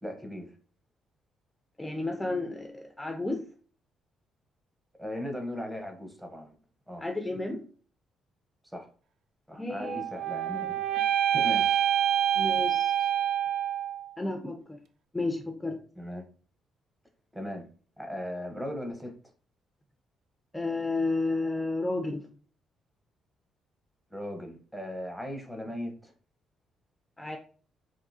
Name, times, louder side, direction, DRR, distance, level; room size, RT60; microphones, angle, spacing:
voice 1, 0.0-0.5 5.0-6.5 6.9-7.1 8.7-8.9 9.5-10.8 11.3-11.8 16.0-16.2 17.3-17.7 18.0-19.1 24.1-26.1, left 1 dB, 10° right, 5 dB, 0.9 m, -38 dB
voice 2, 1.8-3.4 7.0-7.6 9.5-10.0 12.4-13.1 14.2-14.8 15.1-15.8 20.5-22.3 27.2-27.4, left 2 dB, 10° left, 4 dB, 0.5 m, -32 dB
sound 1, 9.8-14.1, right 10 dB, 75° right, 0.4 m, -27 dB
3.6 x 2.6 x 2.7 m, 0.40 s
cardioid pair, 90°, 0 cm